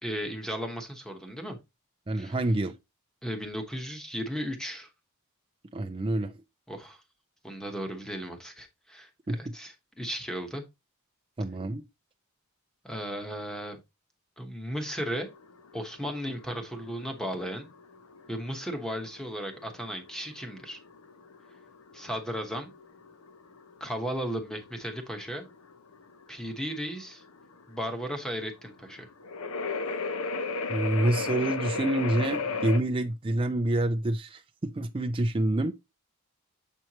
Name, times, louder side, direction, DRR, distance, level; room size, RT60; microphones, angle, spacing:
voice 1, 0.0-1.6 2.1-2.4 3.2-4.9 6.7-7.0 7.4-9.1 9.4-10.6 12.8-13.8 14.4-15.3 15.7-17.7 18.3-20.8 21.9-22.7 23.8-25.5 26.3-27.2 27.7-29.1, equal, 5° left, 1.1 m, -35 dB
voice 2, 2.1-2.8 5.7-6.3 9.3-9.4 11.4-11.8 30.7-35.7, right 1 dB, 25° right, 0.4 m, -27 dB
sound 1, 14.9-32.8, left 4 dB, 70° left, 0.7 m, -36 dB
7.6 x 4.5 x 2.9 m
head